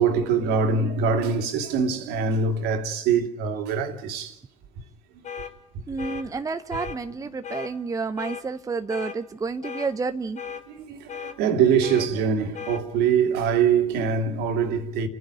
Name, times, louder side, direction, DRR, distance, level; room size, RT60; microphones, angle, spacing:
voice 1, 0.0-4.4 7.2-7.3 10.7-15.1, right 6 dB, 65° right, 2.6 m, -23 dB
sound 1, 5.2-5.5 6.0-6.2 6.7-7.0 7.4-7.7 8.2-8.4 8.9-9.2 9.6-9.9 10.4-10.6 11.1-11.4 11.8-12.1 12.5-12.8, left 7 dB, 40° left, 2.4 m, -36 dB
voice 2, 5.9-10.4, right 4 dB, 20° right, 0.8 m, -30 dB
30.0 x 10.0 x 9.1 m
hypercardioid pair, 70°, 18 cm